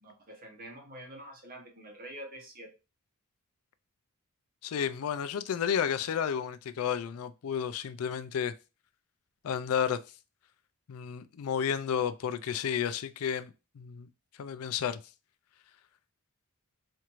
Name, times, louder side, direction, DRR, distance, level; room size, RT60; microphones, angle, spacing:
voice 1, 0.0-2.7, right 1 dB, 40° right, 0.9 m, -46 dB
voice 2, 4.6-8.5 9.4-10.0 10.9-14.1 14.4-15.0, left 8 dB, 75° left, 0.4 m, -32 dB
4.3 x 2.5 x 3.0 m
head